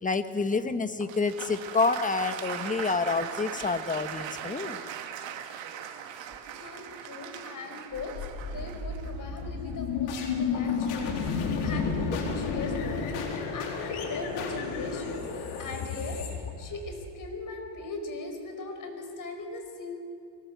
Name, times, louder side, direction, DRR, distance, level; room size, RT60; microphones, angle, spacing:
voice 1, 0.0-4.8, left 4 dB, 15° left, 10 dB, 1.2 m, -28 dB
Applause, 1.0-9.9, right 9 dB, 60° right, 2.4 m, -40 dB
voice 2, 6.5-8.1 8.4-16.3 16.6-20.0, left 3 dB, 40° left, 4 dB, 4.9 m, -39 dB
sound 1, 7.9-17.1, left 5 dB, 80° left, 4.1 m, -32 dB
24.0 x 18.5 x 8.2 m, 2.4 s
cardioid pair, 120°, 50 cm